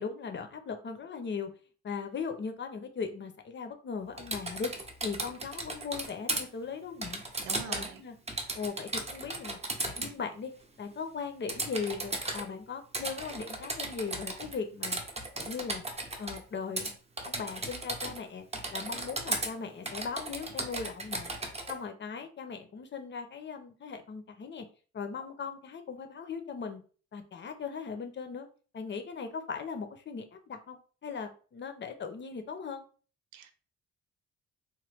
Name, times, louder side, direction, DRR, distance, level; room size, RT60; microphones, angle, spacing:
voice 1, 0.0-1.5 1.8-4.7 5.0-7.2 7.6-8.2 8.5-9.6 9.9-10.5 10.8-15.0 15.4-15.8 16.2-16.9 17.2-18.4 18.7-21.3 21.7-24.7 24.9-26.8 27.1-28.5 28.7-32.9, left 5 dB, 40° left, 0.6 m, -38 dB
Typing, 4.2-6.4 7.0-8.0 8.3-10.1 11.5-12.4 12.9-14.6 14.8-16.4 16.8-16.9 17.2-18.2 18.5-19.5 19.9-21.7, right 2 dB, 20° right, 0.7 m, -36 dB
voice 2, 7.4-8.0 33.3-33.6, right 9 dB, 80° right, 0.5 m, -44 dB
3.0 x 2.1 x 3.3 m
cardioid pair, 90°, 30 cm